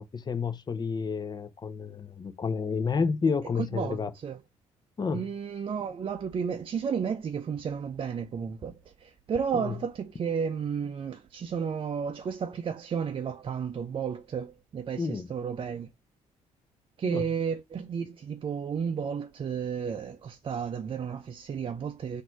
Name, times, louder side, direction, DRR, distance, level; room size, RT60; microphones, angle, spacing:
voice 1, 0.0-4.1 5.0-5.3 9.5-9.7 15.0-15.3 17.0-17.2, left 5 dB, 30° left, 0.8 m, -30 dB
voice 2, 3.6-4.4 5.1-15.9 17.0-22.2, right 7 dB, 40° right, 0.6 m, -32 dB
4.2 x 2.7 x 4.4 m
supercardioid pair, 75°, 13 cm